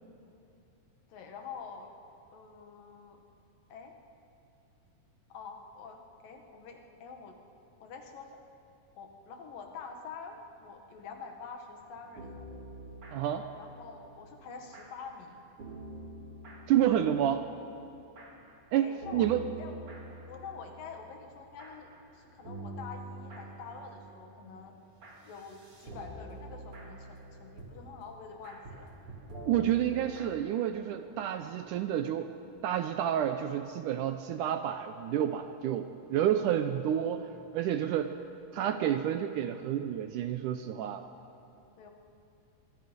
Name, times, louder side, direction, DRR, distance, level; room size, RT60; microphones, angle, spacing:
voice 1, 1.1-1.9 2.3-3.2 3.7-3.9 5.3-7.4 7.8-8.4 9.0-12.3 13.6-15.4 18.8-19.3 19.6-19.7 20.3-24.7 25.2-28.9 37.2-37.3 41.8-41.9, left 5 dB, 70° left, 3 dB, 3.3 m, -46 dB
sound 1, 11.9-15.3 15.6-18.7 19.0-30.3, right 1 dB, 40° right, 3.5 m, -47 dB
voice 2, 13.1-13.5 16.7-17.5 18.7-19.4 29.5-32.3 32.6-37.3 37.5-38.2 38.5-41.0, right 10 dB, 75° right, 8 dB, 2.0 m, -29 dB
25.0 x 23.0 x 5.3 m, 2.7 s
omnidirectional pair, 4.1 m